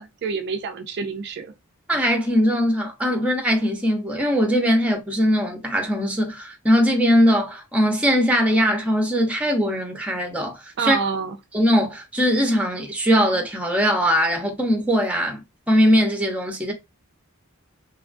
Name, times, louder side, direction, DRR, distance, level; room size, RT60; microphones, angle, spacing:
voice 1, 0.0-1.5 10.8-11.4, right 5 dB, 50° right, 0.4 m, -27 dB
voice 2, 1.9-11.0 11.5-15.4 15.7-16.7, equal, 5° right, 0.7 m, -20 dB
3.2 x 2.3 x 2.4 m
head